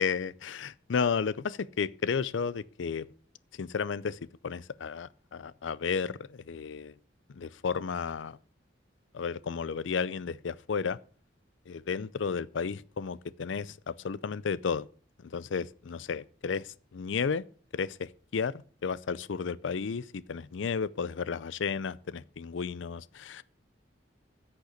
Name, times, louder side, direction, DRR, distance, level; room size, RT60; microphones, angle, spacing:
voice 1, 0.0-3.1 3.5-7.0 7.3-8.4 9.1-11.0 11.7-14.9 15.2-17.5 17.7-23.4, left 6 dB, 90° left, 0.5 m, -33 dB
10.0 x 6.7 x 8.2 m
head